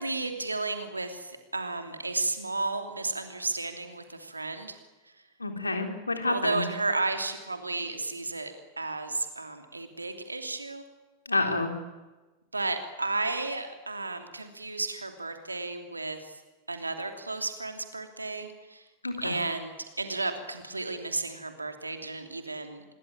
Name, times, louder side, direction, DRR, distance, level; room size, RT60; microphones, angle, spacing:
voice 1, 0.0-4.8 5.0-5.1 6.3-10.8 12.5-16.4 16.7-18.9 19.2-22.8, right 3 dB, 80° right, 6 dB, 2.9 m, -33 dB
voice 2, 5.4-6.6 11.3-11.7 19.0-19.4, left 2 dB, 80° left, 5 dB, 3.6 m, -29 dB
26.5 x 22.0 x 8.9 m, 1.2 s
figure-of-eight pair, 90°, 0 cm